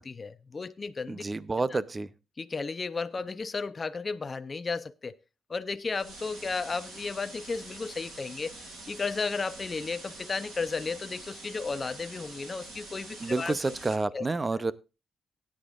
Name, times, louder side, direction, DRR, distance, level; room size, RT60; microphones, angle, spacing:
voice 1, 0.0-1.2 1.7-1.8 2.4-5.2 5.5-8.5 8.9-13.6 14.1-14.2, left 4 dB, 30° left, 0.6 m, -34 dB
voice 2, 1.1-2.1 13.2-14.7, right 3 dB, 20° right, 0.6 m, -29 dB
sound 1, 5.9-13.9, right 2 dB, 90° right, 7.2 m, -46 dB
18.0 x 9.8 x 2.5 m
cardioid pair, 135°, 0 cm